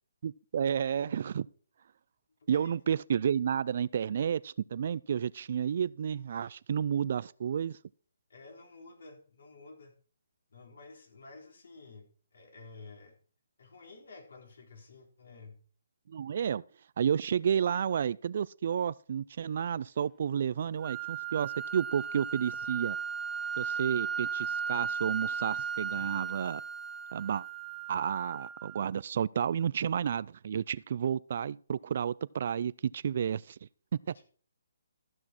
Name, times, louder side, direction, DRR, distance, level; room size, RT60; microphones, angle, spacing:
voice 1, 0.2-1.5 2.5-7.8 16.1-16.6 17.0-23.0 23.6-26.6 27.1-27.4 27.9-33.6, right 8 dB, 50° right, 0.4 m, -31 dB
voice 2, 8.3-9.9 10.5-13.2 13.6-15.6 25.9-26.2 34.1-34.2, left 3 dB, 70° left, 3.8 m, -52 dB
sound 1, 20.8-28.8, right 7 dB, 5° right, 0.8 m, -36 dB
13.5 x 6.3 x 4.4 m
hypercardioid pair, 160°, 0 cm